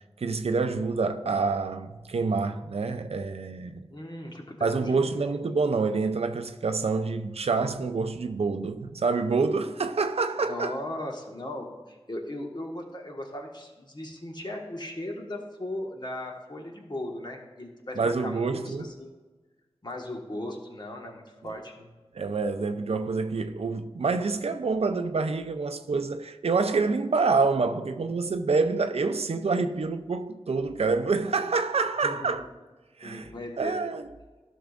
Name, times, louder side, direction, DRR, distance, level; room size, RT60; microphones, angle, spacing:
voice 1, 0.2-3.8 4.6-10.8 18.0-18.9 22.1-32.5 33.0-33.3 33.6-34.1, right 4 dB, 80° right, 0.5 m, -27 dB
voice 2, 3.9-5.1 10.4-19.1 19.8-21.9 32.0-32.3 33.0-33.8, left 1 dB, 45° left, 1.5 m, -37 dB
12.5 x 6.1 x 2.5 m
cardioid pair, 40°, 10 cm